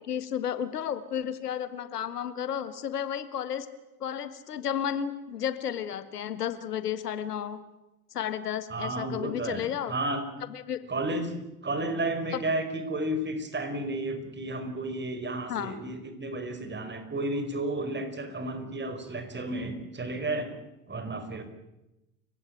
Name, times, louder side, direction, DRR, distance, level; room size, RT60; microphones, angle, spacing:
voice 1, 0.0-3.7 4.0-7.6 8.1-9.9 10.5-10.8 12.3-12.4 15.5-15.7, left 9 dB, 80° left, 13 dB, 1.7 m, -32 dB
voice 2, 8.7-10.2 10.9-20.5 20.9-21.4, right 2 dB, 25° right, 9 dB, 5.1 m, -32 dB
29.5 x 16.5 x 9.3 m, 0.98 s
figure-of-eight pair, 70°, 46 cm